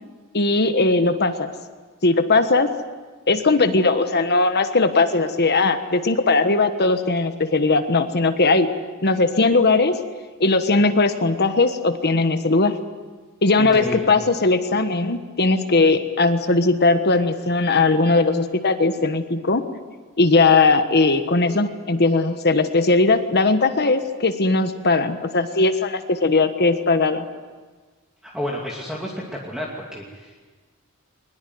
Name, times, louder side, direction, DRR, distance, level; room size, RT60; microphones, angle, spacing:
voice 1, 0.3-1.5 2.0-2.7 3.3-8.7 9.0-10.0 10.4-12.8 13.4-19.6 20.2-27.2, left 3 dB, 50° left, 9 dB, 1.4 m, -19 dB
voice 2, 13.6-14.1 28.2-30.4, equal, 5° right, -3 dB, 2.6 m, -31 dB
23.0 x 21.0 x 9.5 m, 1.4 s
head